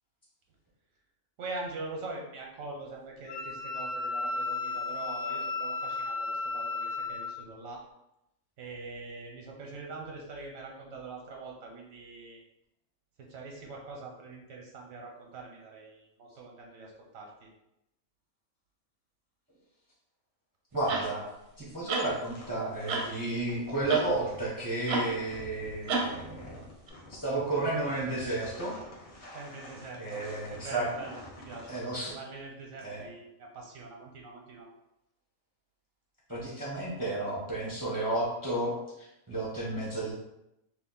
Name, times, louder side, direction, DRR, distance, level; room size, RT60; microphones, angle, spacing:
voice 1, 1.4-7.8 8.6-12.4 13.2-17.5 29.3-30.2 30.5-34.7, right 3 dB, 90° right, 0 dB, 1.1 m, -43 dB
Wind instrument woodwind instrument, 3.3-7.3, left 3 dB, 65° left, 0.8 m, -34 dB
voice 2, 20.7-21.2 21.6-26.6 27.1-28.7 30.0-30.9 31.7-32.1 32.8-33.0 36.3-40.1, right 2 dB, 25° right, -6 dB, 0.5 m, -32 dB
sound 1, 20.9-21.1 21.9-22.1 22.9-23.1 23.9-24.1 24.9-25.1 25.9-26.1 26.9-27.0, right 3 dB, 60° right, 0.7 m, -30 dB
sound 2, 22.0-31.8, left 1 dB, 40° left, 0.5 m, -48 dB
2.8 x 2.4 x 3.7 m, 0.85 s
omnidirectional pair, 1.4 m